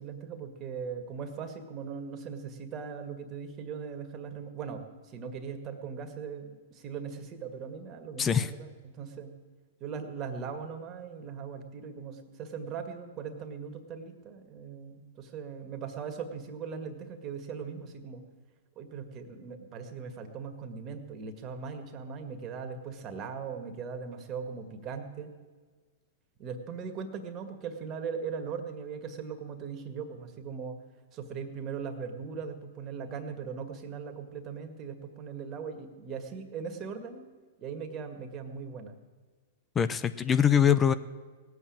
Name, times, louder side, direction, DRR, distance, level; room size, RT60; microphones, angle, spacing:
voice 1, 0.0-9.3 9.8-18.2 18.8-25.3 26.4-30.8 31.1-37.3 37.6-39.0, right 6 dB, 35° right, 6 dB, 2.0 m, -39 dB
voice 2, 8.2-8.5 39.8-40.9, left 8 dB, 20° left, 13 dB, 0.5 m, -23 dB
18.0 x 8.1 x 8.8 m, 1.5 s
hypercardioid pair, 115°, 0 cm